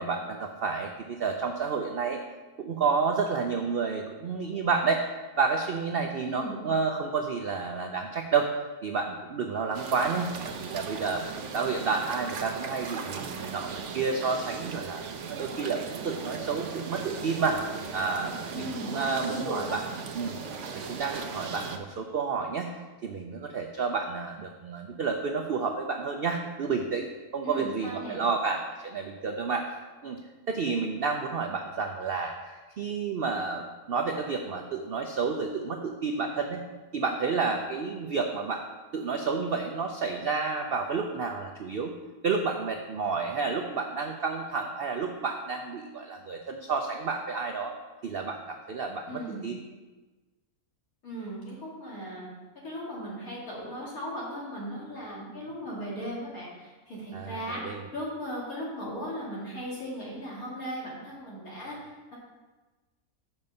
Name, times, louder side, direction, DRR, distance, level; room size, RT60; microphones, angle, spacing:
voice 1, 0.0-2.2 2.6-5.0 5.4-8.5 8.8-15.0 15.3-17.6 17.9-19.8 20.1-20.4 20.7-29.7 30.0-30.2 30.5-36.6 36.9-38.6 38.9-41.9 42.2-47.7 48.0-49.6 57.1-57.8, right 5 dB, 85° right, 3 dB, 0.5 m, -30 dB
voice 2, 6.1-6.6 18.5-19.8 27.4-28.2 49.1-49.5 51.0-52.3 52.5-57.6 57.9-62.2, equal, 60° left, -6 dB, 2.8 m, -37 dB
sound 1, 9.7-21.8, right 5 dB, 60° right, 0.9 m, -38 dB
7.2 x 5.3 x 5.3 m, 1.2 s
omnidirectional pair, 1.7 m